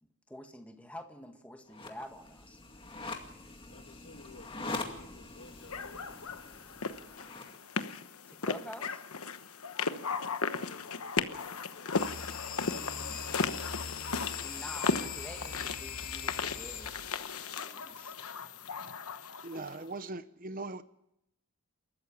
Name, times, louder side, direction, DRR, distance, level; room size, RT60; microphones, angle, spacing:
voice 1, 0.0-2.6 8.3-9.0 14.4-17.0 17.4-18.1, left 1 dB, 5° left, 1.7 m, -48 dB
sound 1, 1.7-7.6, left 3 dB, 25° left, 2.1 m, -43 dB
voice 2, 3.7-6.1 10.6-12.0, left 3 dB, 60° left, 1.8 m, -54 dB
sound 2, 5.7-19.8, left 5 dB, 80° left, 1.1 m, -36 dB
sound 3, 11.9-17.4, left 6 dB, 40° left, 2.1 m, -41 dB
voice 3, 19.4-20.8, right 3 dB, 40° right, 0.7 m, -40 dB
28.5 x 14.0 x 7.3 m
head